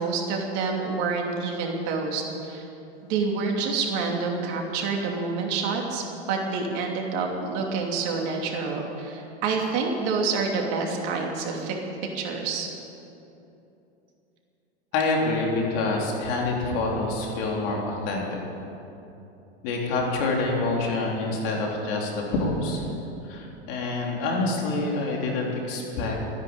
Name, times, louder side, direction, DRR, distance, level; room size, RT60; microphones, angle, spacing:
voice 1, 0.0-2.6 3.0-11.8 12.1-12.7, right 4 dB, 50° right, 1 dB, 2.8 m, -28 dB
voice 2, 14.9-18.4 19.6-22.8 23.3-26.2, left 3 dB, 55° left, -1 dB, 3.8 m, -26 dB
14.0 x 10.5 x 9.0 m, 2.9 s
hypercardioid pair, 115°, 33 cm